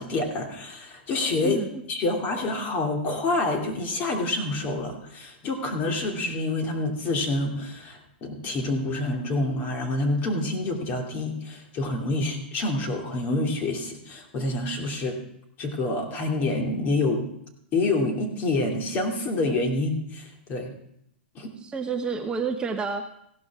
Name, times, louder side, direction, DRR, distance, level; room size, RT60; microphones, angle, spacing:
voice 1, 0.0-1.6 1.9-15.2 15.6-17.2 17.7-20.7 21.3-21.5, left 2 dB, 35° left, 2 dB, 2.6 m, -27 dB
voice 2, 1.4-1.8 21.6-23.1, right 5 dB, 15° right, 4 dB, 0.8 m, -29 dB
15.5 x 12.0 x 3.6 m, 0.76 s
hypercardioid pair, 130°, 6 cm